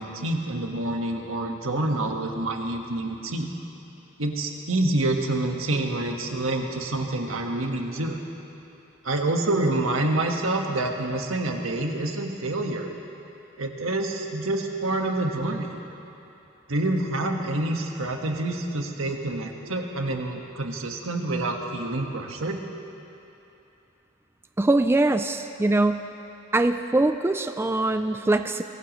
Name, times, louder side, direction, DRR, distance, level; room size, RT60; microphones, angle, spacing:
voice 1, 0.0-3.5 4.2-8.2 9.0-12.9 13.6-15.7 16.7-22.6, right 2 dB, 85° right, 2 dB, 1.5 m, -27 dB
voice 2, 24.6-26.1 26.5-28.6, right 2 dB, 10° right, 8 dB, 0.3 m, -22 dB
23.5 x 18.5 x 3.1 m, 2.9 s
head